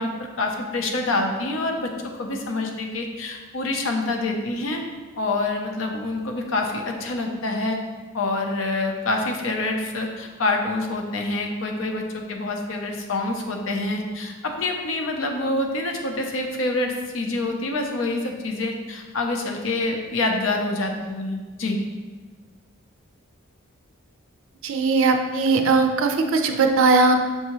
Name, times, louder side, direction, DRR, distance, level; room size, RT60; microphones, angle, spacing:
voice 1, 0.0-4.8 5.2-7.8 8.1-21.8, left 2 dB, 70° left, 2 dB, 0.6 m, -26 dB
voice 2, 24.6-27.1, right 3 dB, 70° right, 5 dB, 0.4 m, -19 dB
6.6 x 2.7 x 3.0 m, 1.3 s
head